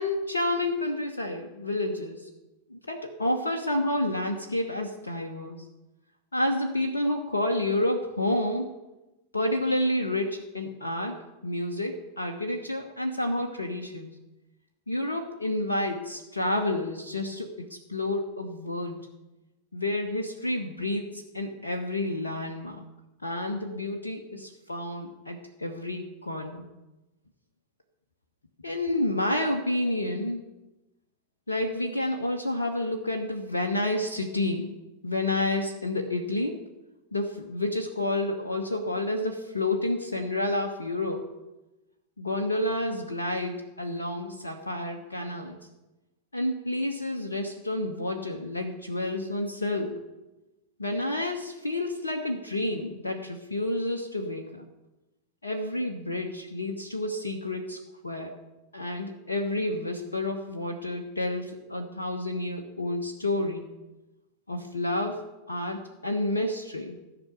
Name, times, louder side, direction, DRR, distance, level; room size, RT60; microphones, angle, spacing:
voice 1, 0.0-2.3 2.7-5.6 6.3-8.7 9.3-14.1 14.9-19.0 19.7-22.8 23.2-26.7 28.6-30.4 31.5-34.8 35.0-36.7 37.1-41.3 42.2-45.6 46.3-50.0 50.8-54.7 55.4-58.3 58.7-63.7 64.5-67.0, left 1 dB, 75° left, 3 dB, 1.1 m, -30 dB
14.0 x 6.0 x 8.2 m, 1.0 s
figure-of-eight pair, 90°, 0 cm